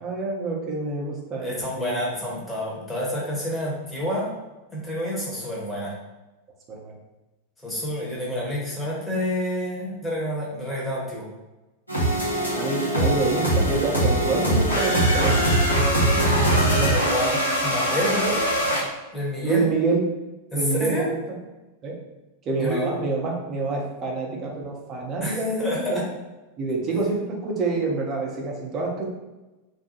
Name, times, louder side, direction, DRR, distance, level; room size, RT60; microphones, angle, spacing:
voice 1, 0.0-2.0 6.7-6.9 12.5-15.7 19.4-20.0 20.5-21.4 21.8-22.0 22.5-26.1 26.6-29.1, right 3 dB, 30° right, -1 dB, 0.7 m, -27 dB
voice 2, 1.4-4.3 4.7-5.9 7.6-11.3 12.9-13.1 16.8-18.5 19.1-19.7 20.5-21.0 22.6-22.9 25.2-26.0, left 1 dB, 5° left, -6 dB, 1.0 m, -28 dB
sound 1, 11.9-18.8, right 1 dB, 90° left, 0.9 m, -22 dB
2.6 x 2.2 x 2.9 m, 1.1 s
figure-of-eight pair, 90°, 0 cm